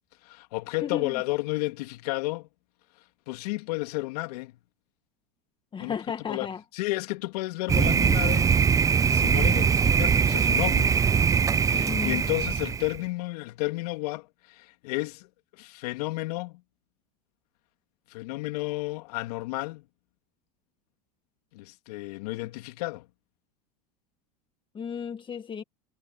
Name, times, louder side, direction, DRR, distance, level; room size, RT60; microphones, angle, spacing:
voice 1, 0.2-2.5 3.3-4.6 5.8-6.0 6.3-6.5 6.7-11.0 11.6-15.3 15.5-16.6 18.1-19.8 21.5-23.1, left 21 dB, 70° left, 2.8 m, -32 dB
voice 2, 0.8-1.2 5.7-6.6 11.7-12.2 24.7-25.6, left 7 dB, 25° left, 1.7 m, -34 dB
Thunder, 7.7-13.0, right 6 dB, 15° right, 0.4 m, -22 dB
hypercardioid pair, 105°, 20 cm